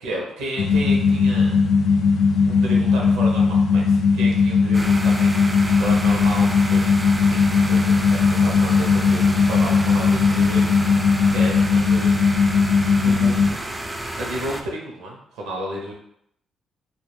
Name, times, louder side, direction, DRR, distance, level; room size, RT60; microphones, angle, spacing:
voice 1, 0.0-1.6 2.5-10.9 11.2-12.1 13.0-13.6 14.1-15.9, right 1 dB, 85° right, -1 dB, 0.6 m, -32 dB
sound 1, 0.6-13.5, left 4 dB, 75° left, 0.3 m, -18 dB
sound 2, 4.7-14.6, right 1 dB, 20° right, 0.3 m, -31 dB
2.2 x 2.2 x 3.2 m, 0.72 s
supercardioid pair, 55°, 0 cm